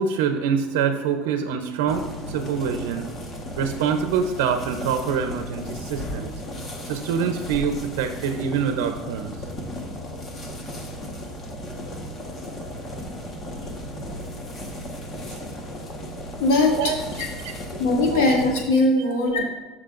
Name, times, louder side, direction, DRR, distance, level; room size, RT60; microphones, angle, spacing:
voice 1, 0.0-3.2 3.6-6.3 6.9-9.3 15.3-15.4 16.7-17.0 17.4-17.5 18.1-18.3 19.0-19.4, right 7 dB, 90° right, 6 dB, 0.7 m, -25 dB
sound 1, 1.9-18.6, equal, 30° left, 1.3 m, -35 dB
voice 2, 16.4-16.8 17.2-17.3 17.8-19.4, left 2 dB, 90° left, -1 dB, 2.2 m, -20 dB
13.5 x 6.2 x 2.5 m, 1.1 s
cardioid pair, 135°, 0 cm